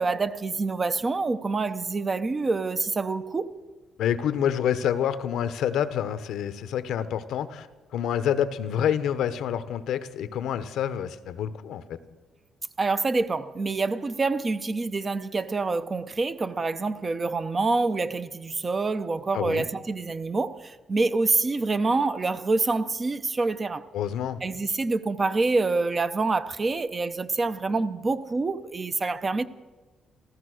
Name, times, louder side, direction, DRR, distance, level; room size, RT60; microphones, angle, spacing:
voice 1, 0.0-3.6 12.8-23.9 24.4-29.4, right 3 dB, 25° right, 0.7 m, -26 dB
voice 2, 4.0-7.7 7.9-12.0 19.3-19.7 23.9-24.4, left 9 dB, 75° left, 0.9 m, -27 dB
15.0 x 14.5 x 6.4 m
cardioid pair, 120°, 0 cm